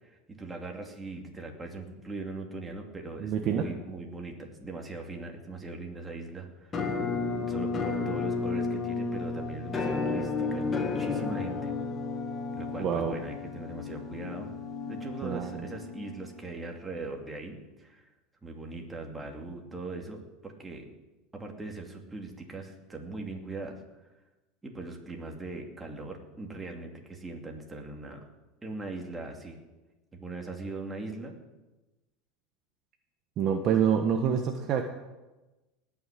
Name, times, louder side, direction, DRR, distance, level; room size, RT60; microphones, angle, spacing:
voice 1, 0.0-6.9 7.4-11.7 12.5-14.5 14.8-18.1 18.4-20.9 21.3-23.8 24.6-28.2 28.6-29.6 30.1-31.3, right 3 dB, 15° right, 2 dB, 2.7 m, -40 dB
voice 2, 3.2-3.7 12.8-13.2 15.2-15.6 33.4-34.9, right 8 dB, 45° right, 5 dB, 1.2 m, -27 dB
Musical instrument, 6.7-16.5, left 4 dB, 25° left, 1.9 m, -32 dB
19.0 x 6.3 x 8.5 m, 1.1 s
supercardioid pair, 120°, 0 cm